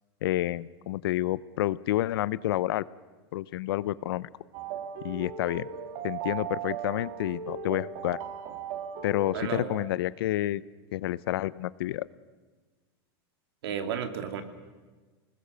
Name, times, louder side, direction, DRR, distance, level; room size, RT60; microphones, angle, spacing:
voice 1, 0.2-2.8 3.3-4.3 5.0-5.7 6.0-8.2 9.0-10.6 10.9-12.1, left 14 dB, 65° left, 19 dB, 0.6 m, -29 dB
sound 1, 4.5-9.9, right 7 dB, 35° right, 1.6 m, -37 dB
voice 2, 9.3-9.7 13.6-14.4, right 8 dB, 70° right, 7 dB, 2.6 m, -32 dB
28.5 x 20.0 x 6.8 m, 1.3 s
supercardioid pair, 180°, 13 cm